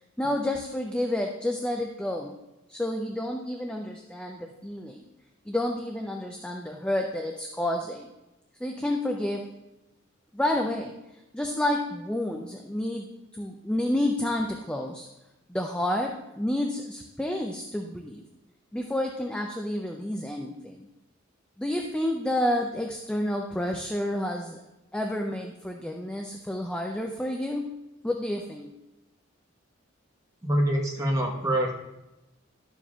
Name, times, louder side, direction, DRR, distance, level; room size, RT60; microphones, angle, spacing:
voice 1, 0.2-2.4 2.7-5.1 5.5-8.1 8.6-9.5 10.3-11.0 11.3-13.1 13.3-15.1 15.5-18.2 18.7-20.9 21.6-24.6 24.9-27.7 28.0-28.7, left 1 dB, 5° left, 2 dB, 0.4 m, -30 dB
voice 2, 30.4-31.7, right 1 dB, 15° right, -1 dB, 1.0 m, -25 dB
11.5 x 7.1 x 2.3 m, 0.98 s
head